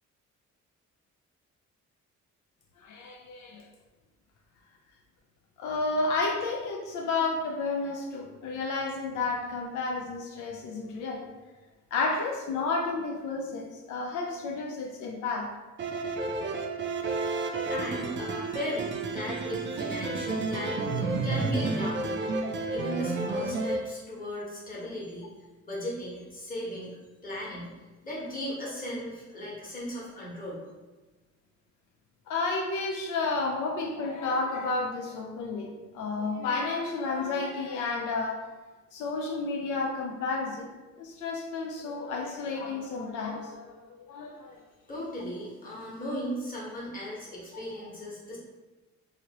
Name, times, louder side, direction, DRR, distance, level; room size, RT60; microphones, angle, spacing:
voice 1, 2.8-3.6 5.6-11.3 11.9-15.5 23.2-23.3 32.3-38.5 38.9-40.7 41.0-43.8 44.1-44.6, left 3 dB, 85° left, 0 dB, 0.5 m, -31 dB
sound 1, 15.8-23.8, right 3 dB, 40° right, 0.4 m, -31 dB
voice 2, 17.4-22.2 22.7-25.3 25.7-26.9 27.2-27.7 28.0-30.6 44.9-48.4, equal, 30° left, -6 dB, 1.3 m, -36 dB
2.9 x 2.7 x 2.9 m, 1.2 s
cardioid pair, 90°, 30 cm